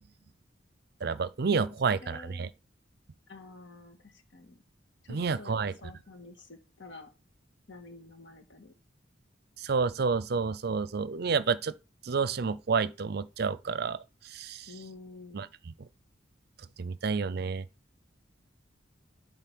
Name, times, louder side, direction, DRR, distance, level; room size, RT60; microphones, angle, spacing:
voice 1, 1.0-2.5 5.1-5.7 9.6-11.7 12.1-14.0 14.3-14.6 15.3-15.5 16.8-17.6, right 5 dB, 60° right, 0.5 m, -29 dB
voice 2, 1.8-2.5 3.3-4.6 5.0-7.1 7.7-8.7 14.7-15.5, left 3 dB, 80° left, 1.7 m, -49 dB
8.1 x 3.9 x 6.0 m
head